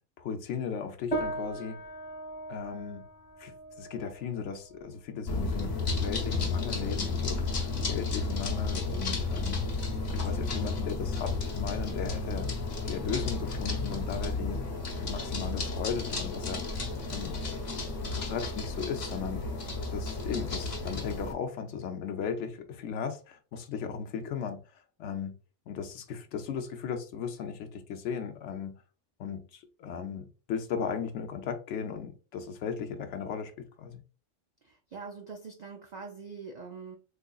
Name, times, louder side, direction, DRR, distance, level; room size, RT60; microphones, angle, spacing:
voice 1, 0.2-1.8 2.5-3.0 3.4-9.6 10.1-12.5 12.8-14.6 15.0-16.8 17.1-17.4 18.0-19.4 19.9-24.6 25.0-25.4 25.7-28.8 29.2-34.0, left 7 dB, 70° left, 0.9 m, -36 dB
sound 1, 1.1-10.8, right 2 dB, 10° left, 0.7 m, -41 dB
sound 2, 5.3-21.3, left 3 dB, 40° left, 0.9 m, -32 dB
voice 2, 34.6-37.0, right 5 dB, 70° right, 0.4 m, -43 dB
3.7 x 3.1 x 2.3 m
omnidirectional pair, 1.3 m